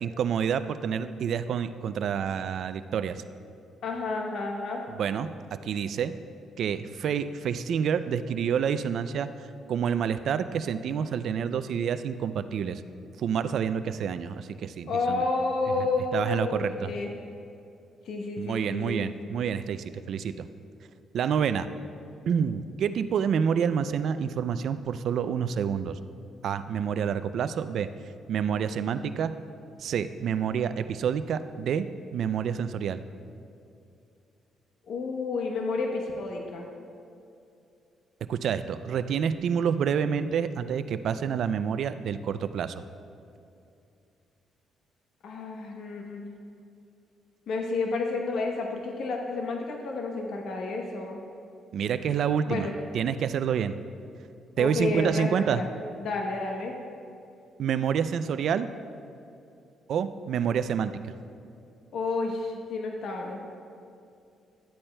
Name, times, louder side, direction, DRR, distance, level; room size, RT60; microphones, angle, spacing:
voice 1, 0.0-3.2 4.9-5.3 5.6-6.1 6.6-9.3 9.7-12.8 13.2-15.2 15.8-15.9 16.1-16.9 18.4-20.4 21.1-21.7 22.3-26.0 26.4-27.9 28.3-29.3 29.8-31.8 32.1-33.0 38.3-42.7 51.7-52.7 52.9-53.8 54.6-55.6 57.6-58.7 59.9-61.1, right 7 dB, 65° right, 12 dB, 0.3 m, -28 dB
voice 2, 3.8-4.8 14.9-17.1 18.1-19.0 34.9-36.7 45.2-46.3 47.5-51.2 52.5-52.7 54.6-55.7 56.0-56.7 61.9-63.5, left 3 dB, 70° left, 2 dB, 0.8 m, -30 dB
11.5 x 8.5 x 2.2 m, 2.6 s
cardioid pair, 90°, 0 cm